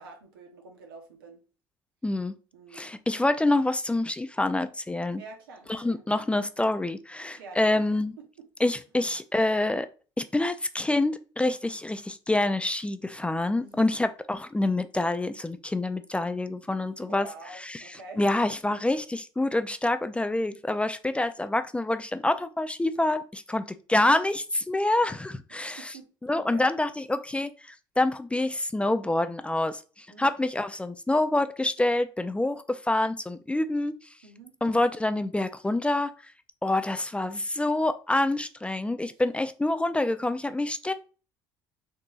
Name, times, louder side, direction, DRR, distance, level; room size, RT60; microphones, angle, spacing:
voice 1, 0.0-1.4 2.5-2.9 5.2-6.0 7.3-7.9 8.2-8.5 13.6-14.0 17.0-18.2 25.5-26.1 26.3-26.7 30.1-30.3 34.2-34.5, right 3 dB, 90° right, 0.8 m, -46 dB
voice 2, 2.0-2.3 2.7-5.2 5.7-8.1 8.6-9.9 10.2-17.3 17.7-17.8 18.2-25.9 26.3-27.5 28.0-33.9 34.6-36.1 36.6-40.9, left 2 dB, 10° left, 0.3 m, -26 dB
3.8 x 2.7 x 2.3 m
hypercardioid pair, 65°, 12 cm